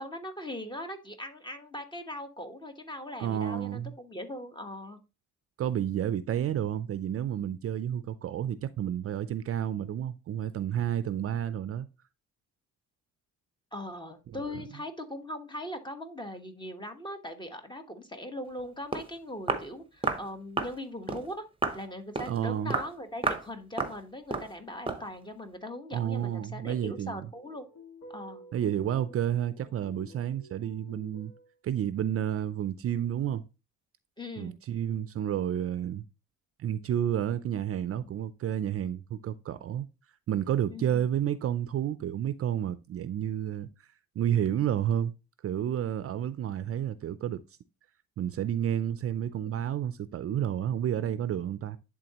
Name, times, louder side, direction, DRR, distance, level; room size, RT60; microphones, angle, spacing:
voice 1, 0.0-5.0 13.7-21.4 21.7-27.7 28.1-28.4 34.2-34.6 40.7-41.0, left 1 dB, 15° left, 1.2 m, -40 dB
voice 2, 3.2-3.9 5.6-11.9 14.3-14.6 22.3-22.7 25.9-27.3 28.5-31.3 31.6-33.4 34.4-36.0 36.6-39.9 40.3-43.7 44.2-45.2 45.4-47.4 48.2-51.8, right 10 dB, 50° right, 0.5 m, -30 dB
Walk footsteps, 18.6-18.7 18.9-19.1 19.5-19.7 20.0-20.3 20.6-20.8 21.1-21.3 21.6-21.8 22.2-22.4 22.7-22.9 23.2-23.5 23.8-24.0 24.3-24.5 24.9-25.1, right 3 dB, 15° right, 0.9 m, -31 dB
sound 1, 27.4-31.5, left 1 dB, 65° left, 2.0 m, -51 dB
10.5 x 3.7 x 2.9 m
cardioid pair, 90°, 30 cm